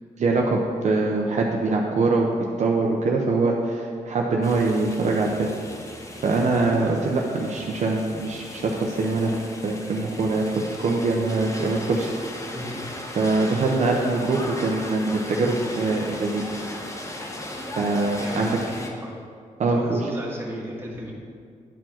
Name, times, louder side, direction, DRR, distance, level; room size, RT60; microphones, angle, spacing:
voice 1, 0.2-2.3 2.6-5.5 6.2-9.3 9.6-10.4 10.8-12.1 12.4-12.5 13.2-16.5 17.8-18.6 19.6-20.1, right 3 dB, 60° right, -1 dB, 0.8 m, -23 dB
sound 1, 4.4-18.9, left 1 dB, 25° left, 1.0 m, -37 dB
voice 2, 12.5-13.0 18.2-18.5 18.8-19.2 19.7-21.1, equal, 15° right, -3 dB, 1.7 m, -35 dB
10.0 x 4.5 x 4.4 m, 2.2 s
cardioid pair, 90°, 13 cm